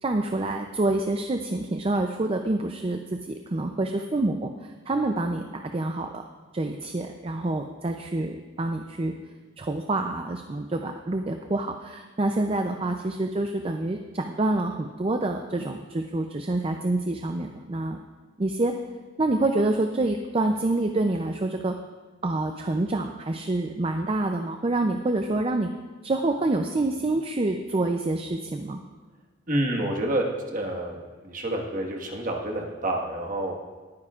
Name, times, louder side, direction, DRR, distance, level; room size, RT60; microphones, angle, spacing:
voice 1, 0.0-6.3 6.5-9.1 9.6-18.0 18.4-18.7 19.2-21.7 22.2-25.7 26.0-28.8, right 2 dB, 30° right, 4 dB, 0.5 m, -27 dB
voice 2, 29.5-30.2 30.5-33.5, right 1 dB, 45° right, 0 dB, 1.5 m, -28 dB
21.0 x 9.4 x 2.4 m, 1.4 s
head